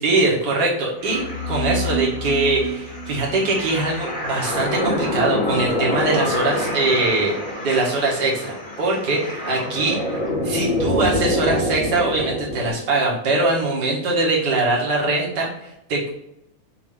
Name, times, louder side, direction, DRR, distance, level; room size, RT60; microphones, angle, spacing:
voice 1, 0.0-7.3 7.6-10.0 10.4-16.1, right 2 dB, 40° right, -4 dB, 2.0 m, -22 dB
sound 1, 1.0-12.7, left 1 dB, 20° left, 1.8 m, -26 dB
8.3 x 3.3 x 3.5 m, 0.82 s
omnidirectional pair, 3.6 m